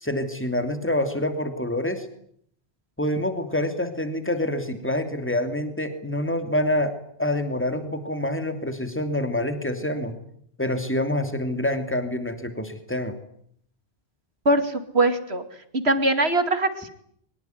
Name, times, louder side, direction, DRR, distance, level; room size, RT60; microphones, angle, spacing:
voice 1, 0.0-2.1 3.0-10.2 10.6-13.1, left 1 dB, 10° left, 8 dB, 3.0 m, -26 dB
voice 2, 14.5-15.4 15.7-16.9, right 2 dB, 85° right, 9 dB, 2.8 m, -22 dB
23.5 x 21.5 x 9.7 m, 0.67 s
omnidirectional pair, 1.0 m